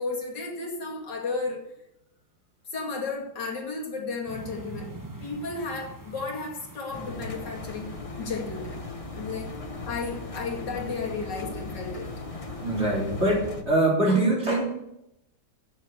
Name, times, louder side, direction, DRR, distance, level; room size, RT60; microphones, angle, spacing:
voice 1, 0.0-1.6 2.7-4.9 5.2-7.9 8.2-8.8 9.2-9.5 9.9-12.1, left 4 dB, 80° left, 0 dB, 2.9 m, -33 dB
sound 1, 4.3-13.4, right 1 dB, 10° right, 1.3 m, -46 dB
Engine, 6.9-13.6, left 2 dB, 25° left, 0.8 m, -38 dB
voice 2, 12.5-14.6, right 1 dB, 40° right, -4 dB, 4.5 m, -23 dB
9.7 x 7.5 x 8.1 m, 0.82 s
omnidirectional pair, 1.8 m